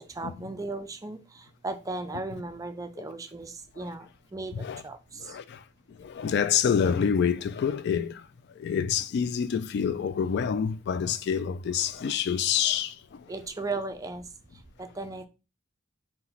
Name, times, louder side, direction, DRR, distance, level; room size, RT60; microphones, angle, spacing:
voice 1, 0.0-5.4 13.3-14.3 14.8-15.3, right 3 dB, 20° right, 0.4 m, -36 dB
voice 2, 5.2-5.6 6.0-8.2 8.6-13.2, left 7 dB, 60° left, 0.3 m, -27 dB
4.3 x 2.2 x 3.9 m
head